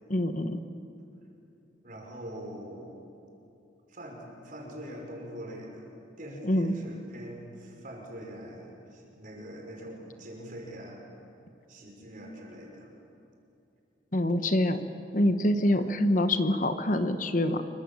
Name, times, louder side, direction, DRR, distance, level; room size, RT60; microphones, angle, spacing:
voice 1, 0.1-0.6 6.4-6.7 14.1-14.9 15.1-17.6, left 1 dB, 45° left, 9 dB, 1.1 m, -25 dB
voice 2, 1.8-3.0 3.9-5.9 6.2-11.0 11.7-12.9 15.7-16.0, equal, 45° right, 0 dB, 5.5 m, -43 dB
27.0 x 23.5 x 7.5 m, 2.8 s
head